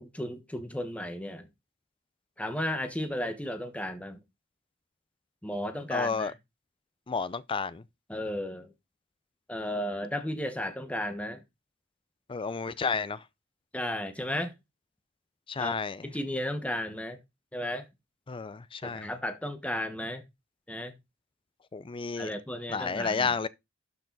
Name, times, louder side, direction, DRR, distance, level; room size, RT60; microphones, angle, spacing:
voice 1, 0.0-1.5 2.4-4.2 5.4-6.3 8.1-8.7 9.5-11.4 13.7-14.5 15.6-15.8 16.0-17.2 17.5-17.8 18.8-20.2 20.7-20.9 22.2-23.3, left 1 dB, 5° left, 1.3 m, -34 dB
voice 2, 5.9-6.3 7.1-7.8 12.3-13.2 15.5-16.0 18.3-19.1 21.7-22.3 22.7-23.5, left 5 dB, 25° left, 0.4 m, -31 dB
12.0 x 4.6 x 4.0 m
head